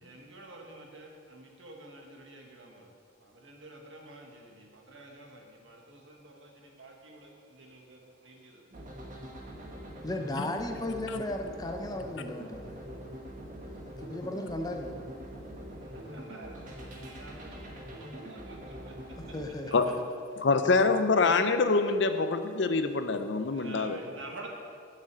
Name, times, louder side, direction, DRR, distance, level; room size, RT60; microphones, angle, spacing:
voice 1, 0.0-8.6 15.7-19.2 19.7-19.8 23.2-24.5, right 2 dB, 75° right, 0 dB, 1.5 m, -49 dB
sound 1, 8.7-19.5, equal, 45° right, 1.3 m, -44 dB
voice 2, 10.0-12.7 14.0-15.0 19.3-19.9, left 1 dB, 20° left, 4 dB, 0.6 m, -35 dB
voice 3, 20.4-24.0, left 4 dB, 65° left, 9 dB, 0.6 m, -25 dB
6.5 x 6.3 x 7.5 m, 2.3 s
head